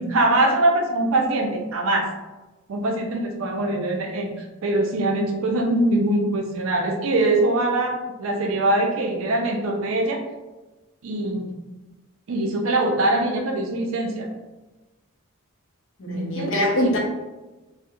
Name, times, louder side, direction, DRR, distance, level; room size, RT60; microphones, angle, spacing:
voice 1, 0.0-2.1 2.7-4.3 4.6-10.2 11.0-11.5 12.3-14.3 16.1-16.5 16.8-16.9, right 2 dB, 70° right, 2 dB, 0.4 m, -22 dB
voice 2, 16.0-17.0, left 1 dB, 60° left, -1 dB, 0.5 m, -23 dB
2.3 x 2.0 x 2.8 m, 1.1 s
head